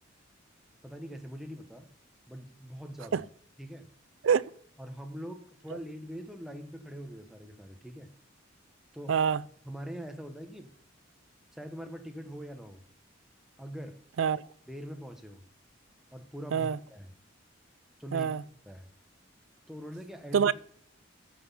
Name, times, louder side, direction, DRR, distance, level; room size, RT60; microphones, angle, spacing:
voice 1, 0.8-1.9 2.3-3.2 3.6-3.9 4.8-8.1 8.9-9.2 9.6-10.7 11.5-12.8 13.6-14.0 14.7-15.5 16.1-17.1 18.0-18.3 18.6-18.9 19.7-20.5, equal, ahead, 1.1 m, -43 dB
voice 2, 9.1-9.4 14.2-14.4 16.5-16.8 18.1-18.4 20.3-20.5, right 7 dB, 70° right, 0.4 m, -25 dB
14.5 x 6.1 x 5.5 m
head